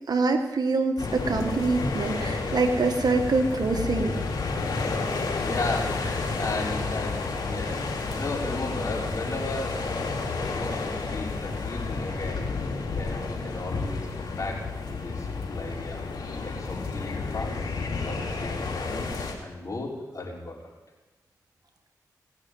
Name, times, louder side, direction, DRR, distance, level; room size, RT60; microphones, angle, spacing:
voice 1, 0.1-4.1, right 3 dB, 70° right, 5 dB, 1.6 m, -25 dB
sound 1, 1.0-19.3, left 3 dB, 80° left, 2.5 m, -31 dB
voice 2, 5.4-9.8 10.4-12.5 12.8-16.0 16.4-17.7 18.0-20.7, left 2 dB, 50° left, -2 dB, 4.4 m, -35 dB
18.0 x 6.6 x 8.8 m, 1.2 s
cardioid pair, 45°, 7 cm